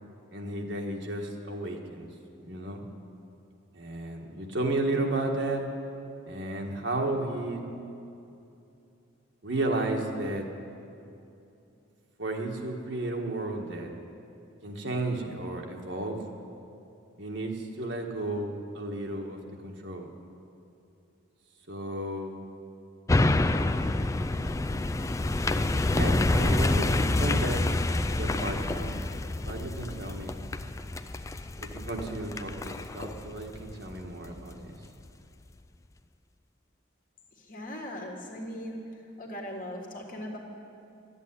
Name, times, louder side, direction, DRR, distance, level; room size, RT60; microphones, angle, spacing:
voice 1, 0.3-2.1 2.4-2.8 3.7-5.7 6.3-7.6 9.4-10.5 12.2-13.9 14.6-16.2 17.2-20.1 21.7-22.3 25.9-27.6 28.2-29.0 29.4-30.4 31.6-34.7, right 2 dB, 60° right, 1 dB, 1.5 m, -33 dB
sound 1, 23.1-34.5 35.0-35.1, left 2 dB, 15° left, 0.3 m, -28 dB
voice 2, 37.4-38.8 39.2-40.4, equal, 45° left, 0 dB, 1.8 m, -39 dB
12.5 x 8.4 x 9.7 m, 2.7 s
head